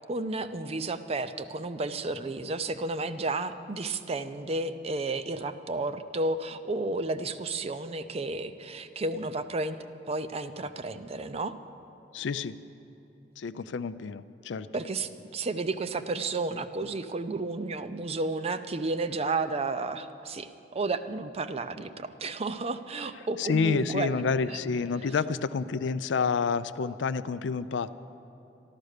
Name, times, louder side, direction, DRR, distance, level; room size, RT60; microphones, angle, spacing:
voice 1, 0.1-9.8 10.1-11.5 14.7-24.6, right 3 dB, 35° right, 11 dB, 0.5 m, -32 dB
voice 2, 12.1-12.5 13.4-14.7 23.4-28.0, left 5 dB, 75° left, 14 dB, 0.4 m, -29 dB
13.0 x 12.0 x 6.6 m, 3.0 s
head